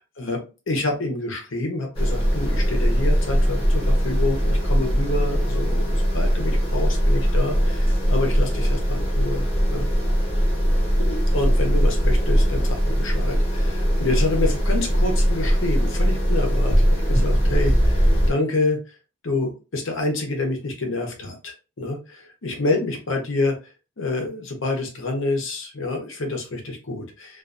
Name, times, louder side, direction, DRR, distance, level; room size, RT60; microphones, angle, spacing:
voice 1, 0.0-9.9 11.0-16.7 17.1-19.0 19.2-23.6 24.0-27.4, left 2 dB, 65° left, 2 dB, 0.7 m, -28 dB
sound 1, 1.9-18.3, equal, 25° left, 0.9 m, -20 dB
2.4 x 2.3 x 2.4 m, 0.32 s
head